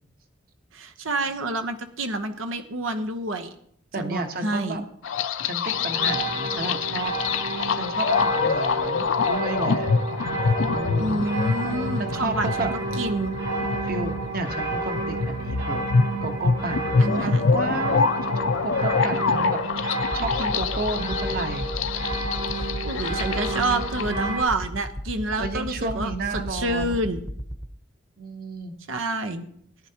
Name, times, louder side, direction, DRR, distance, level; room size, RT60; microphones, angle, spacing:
voice 1, 0.7-3.5 4.0-4.8 11.0-13.3 17.0-17.5 22.5-27.2 28.9-29.5, right 2 dB, 90° right, 6 dB, 1.0 m, -28 dB
voice 2, 3.9-4.9 5.4-7.1 7.7-9.9 10.7-11.2 12.0-12.7 13.8-21.7 22.0-22.1 25.4-27.0 28.2-28.7, right 2 dB, 45° right, 6 dB, 1.1 m, -32 dB
sound 1, 5.0-24.1, left 4 dB, 80° left, 0.6 m, -26 dB
sound 2, 5.7-24.4, right 2 dB, 65° right, 2.1 m, -31 dB
sound 3, 20.0-27.7, equal, 10° left, 0.7 m, -33 dB
18.0 x 10.5 x 2.9 m, 0.66 s
head